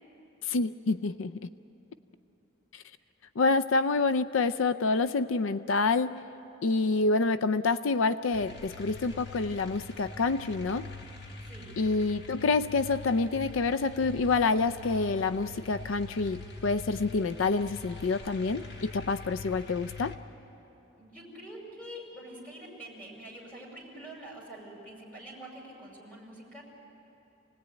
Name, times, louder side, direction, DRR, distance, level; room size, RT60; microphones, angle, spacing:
voice 1, 0.4-1.5 2.7-2.8 3.4-6.2 6.6-10.9 11.8-20.1, left 3 dB, 80° left, 13 dB, 0.5 m, -27 dB
sound 1, 8.3-20.2, left 3 dB, 55° left, 1.7 m, -44 dB
voice 2, 21.0-26.6, right 1 dB, 10° left, -2 dB, 5.4 m, -46 dB
28.0 x 18.5 x 9.1 m, 3.0 s
head